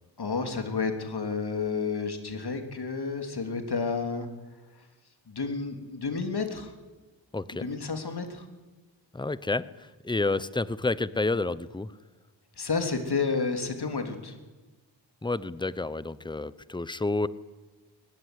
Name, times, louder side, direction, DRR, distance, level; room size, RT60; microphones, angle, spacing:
voice 1, 0.2-4.3 5.3-6.7 7.5-8.4 12.6-14.3, left 4 dB, 55° left, 6 dB, 3.3 m, -31 dB
voice 2, 7.3-7.7 9.1-11.9 15.2-17.3, left 3 dB, 10° left, 18 dB, 0.8 m, -30 dB
23.0 x 19.5 x 9.9 m, 1.2 s
wide cardioid pair, 85°, 47 cm